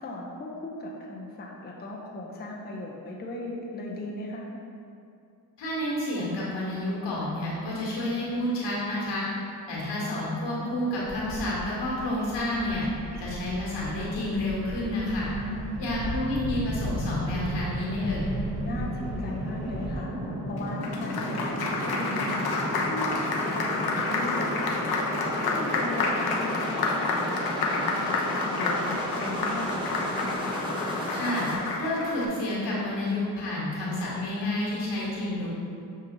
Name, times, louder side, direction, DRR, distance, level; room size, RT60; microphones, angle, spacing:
voice 1, 0.0-4.5 15.3-15.9 18.6-22.5 22.9-24.9 25.4-30.0, left 1 dB, 25° left, -2 dB, 0.6 m, -37 dB
voice 2, 5.6-9.3 9.7-12.9 13.2-15.3 15.8-18.3 31.1-31.5 31.8-35.5, left 1 dB, 75° left, -6 dB, 1.5 m, -30 dB
Bird vocalization bird call bird song, 11.0-20.0, right 1 dB, 40° right, 0.7 m, -37 dB
sound 1, 15.1-31.5, equal, 10° right, 0.9 m, -34 dB
Applause, 20.6-32.3, left 3 dB, 60° left, 0.7 m, -29 dB
6.9 x 2.3 x 3.0 m, 2.6 s
supercardioid pair, 60°, 42 cm